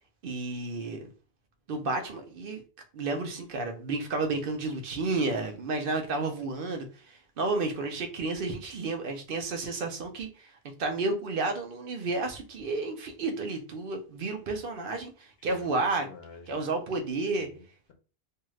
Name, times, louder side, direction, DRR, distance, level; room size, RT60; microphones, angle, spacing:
voice 1, 0.2-1.1 1.7-2.6 2.9-10.5 10.8-16.1 16.5-17.5, right 3 dB, 65° right, 4 dB, 0.7 m, -31 dB
voice 2, 15.4-16.5 17.3-17.9, left 4 dB, 75° left, 5 dB, 0.9 m, -49 dB
2.7 x 2.4 x 3.1 m, 0.36 s
omnidirectional pair, 1.1 m